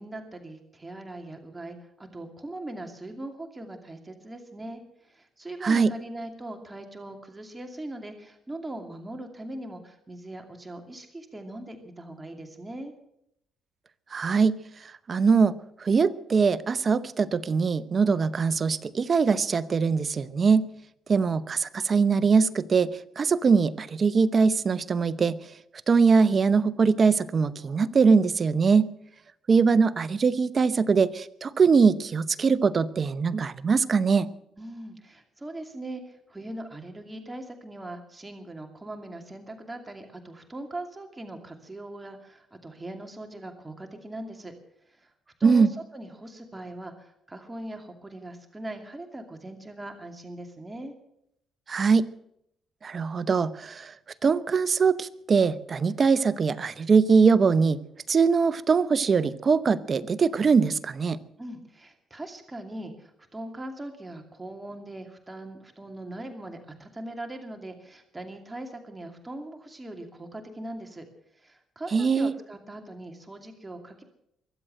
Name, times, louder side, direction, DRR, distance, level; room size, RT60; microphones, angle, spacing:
voice 1, 0.0-12.9 34.6-44.5 44.9-45.1 45.4-51.0 61.4-71.1 71.3-74.0, right 1 dB, 15° right, 5 dB, 2.5 m, -40 dB
voice 2, 14.1-15.5 15.8-20.7 21.1-25.4 25.9-28.9 29.5-34.3 45.4-45.7 51.7-52.1 52.8-53.9 54.2-57.8 58.1-61.2 71.9-72.3, right 5 dB, 40° right, 15 dB, 0.8 m, -22 dB
23.0 x 7.8 x 7.7 m, 0.76 s
cardioid pair, 90°, 0 cm